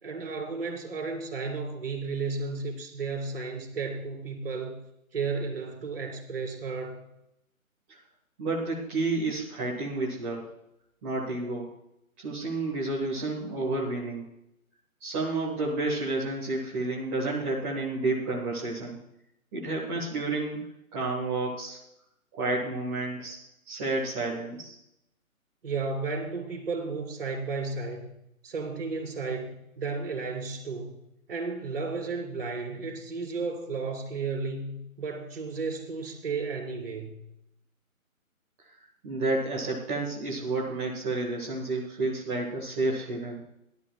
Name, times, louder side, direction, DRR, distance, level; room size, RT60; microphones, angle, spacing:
voice 1, 0.0-4.8 5.1-7.0 25.6-28.1 28.4-31.0 31.3-37.2, right 4 dB, 40° right, 2 dB, 3.2 m, -33 dB
voice 2, 8.4-10.4 11.0-11.7 12.2-14.3 15.0-19.0 19.5-20.6 20.9-21.8 22.3-23.4 23.6-24.8 39.0-43.4, right 2 dB, 10° right, -7 dB, 1.0 m, -30 dB
18.0 x 12.0 x 2.3 m, 0.80 s
figure-of-eight pair, 145°, 43 cm